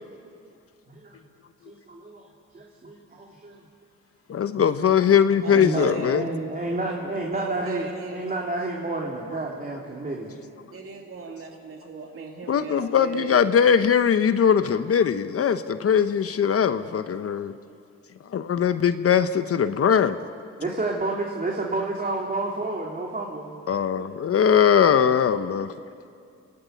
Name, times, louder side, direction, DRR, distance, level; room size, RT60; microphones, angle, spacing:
voice 1, 0.9-1.2 1.7-2.3 2.5-3.6 4.5-4.6 5.5-10.4 20.6-23.6, right 2 dB, 30° right, -1 dB, 3.1 m, -30 dB
voice 2, 4.3-6.2 12.5-17.5 18.3-20.2 23.7-25.7, left 7 dB, 50° left, 10 dB, 0.9 m, -20 dB
voice 3, 5.4-6.2 7.3-8.3 10.7-13.5, right 4 dB, 45° right, 1 dB, 2.8 m, -37 dB
27.5 x 17.0 x 9.3 m, 2.4 s
cardioid pair, 90°, 30 cm